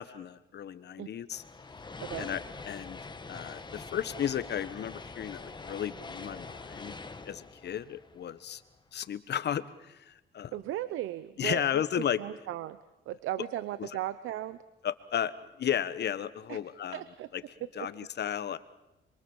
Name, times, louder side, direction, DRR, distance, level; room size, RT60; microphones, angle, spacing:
voice 1, 0.0-1.4 2.2-2.4 2.7-3.0 3.3-6.9 7.2-8.6 8.9-10.5 11.4-12.2 13.8-13.9 14.8-17.0 17.8-18.6, left 9 dB, 60° left, 14 dB, 1.3 m, -34 dB
sound 1, 1.3-8.7, left 3 dB, 20° left, 1.7 m, -44 dB
voice 2, 2.0-2.3 10.5-12.8 13.1-14.6 16.5-16.6 16.9-17.3 17.8-17.9, right 13 dB, 85° right, 14 dB, 0.9 m, -36 dB
26.0 x 23.5 x 7.3 m, 0.99 s
cardioid pair, 90°, 20 cm